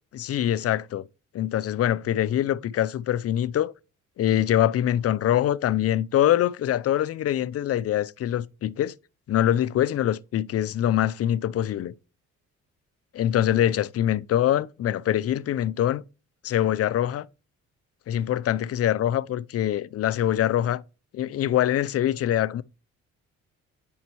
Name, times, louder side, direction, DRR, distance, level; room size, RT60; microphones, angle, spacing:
voice 1, 0.1-1.1 1.3-3.7 4.2-8.9 9.3-11.9 13.2-16.0 16.4-17.3 18.1-20.8 21.1-22.6, left 11 dB, 50° left, 0.5 m, -24 dB
9.3 x 5.3 x 2.9 m
cardioid pair, 90°, 30 cm